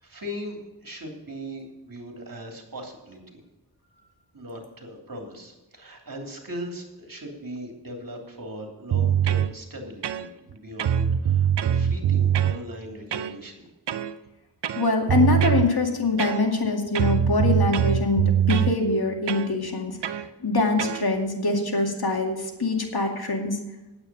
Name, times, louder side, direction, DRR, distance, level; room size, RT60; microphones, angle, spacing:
voice 1, 0.0-3.4 4.3-13.7, equal, 55° right, 2 dB, 3.0 m, -39 dB
sound 1, 8.9-9.5 10.0-10.5 10.8-12.6 13.1-13.4 13.9-14.1 14.6-15.7 16.2-16.7 17.0-18.8 19.3-19.5 20.0-20.3 20.8-21.0, right 9 dB, 80° right, 0.6 m, -23 dB
voice 2, 14.7-23.6, left 3 dB, 60° left, 2 dB, 2.4 m, -24 dB
9.0 x 8.6 x 7.0 m, 1.1 s
cardioid pair, 45°, 42 cm